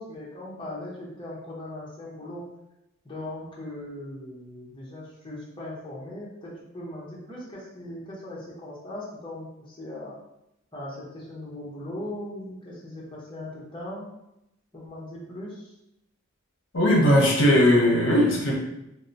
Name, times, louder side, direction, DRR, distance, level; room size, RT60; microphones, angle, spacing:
voice 1, 0.0-2.5 3.0-10.2 10.7-14.1 14.7-15.7, left 1 dB, 20° left, -6 dB, 0.6 m, -39 dB
voice 2, 16.7-18.5, left 1 dB, 60° left, -2 dB, 0.7 m, -19 dB
2.8 x 2.0 x 2.6 m, 0.85 s
head